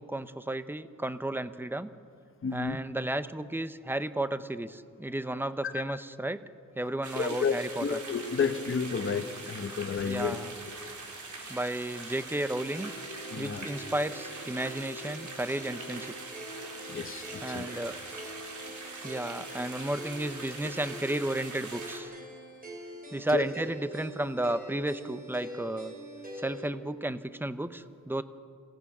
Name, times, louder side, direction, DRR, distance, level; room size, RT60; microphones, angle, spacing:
voice 1, 0.0-1.9 2.5-6.4 6.8-8.0 10.0-10.6 11.5-12.9 13.4-16.1 17.4-18.0 19.0-22.1 23.1-25.9 26.4-28.2, right 1 dB, 5° right, 12 dB, 0.8 m, -33 dB
voice 2, 2.4-2.8 5.9-6.0 7.1-7.5 7.8-10.4 13.3-13.7 16.9-17.7 23.3-23.4, left 5 dB, 40° left, 7 dB, 1.4 m, -31 dB
sound 1, 7.0-22.0, right 3 dB, 60° right, 4.0 m, -43 dB
sound 2, 12.3-26.7, right 1 dB, 25° right, 5.1 m, -44 dB
27.5 x 17.5 x 6.1 m, 2.3 s
wide cardioid pair, 100°, 33 cm